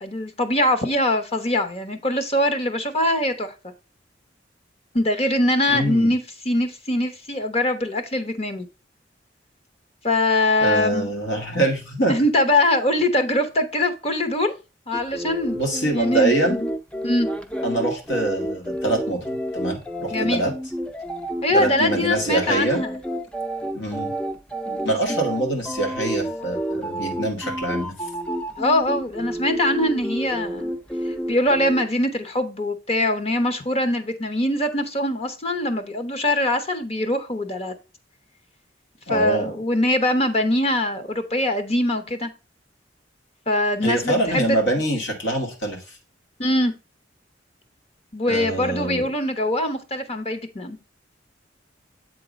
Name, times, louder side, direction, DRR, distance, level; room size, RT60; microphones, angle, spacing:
voice 1, 0.0-3.5 4.9-8.7 10.0-11.1 12.1-14.5 14.9-15.6 15.9-16.7 17.0-17.3 20.1-20.4 21.4-23.0 24.7-25.0 28.6-30.7 31.3-37.7 39.1-42.3 43.5-44.6 46.4-46.7 48.1-50.8, left 1 dB, 35° left, 1.0 m, -22 dB
voice 2, 5.7-6.1 10.6-12.1 15.5-16.6 17.6-20.5 21.5-22.8 23.7-24.1 24.8-27.9 39.1-39.5 43.8-45.8 48.3-49.1, right 2 dB, 85° left, 2.3 m, -24 dB
sound 1, 14.9-31.8, equal, 5° left, 0.5 m, -30 dB
8.1 x 3.8 x 5.1 m
head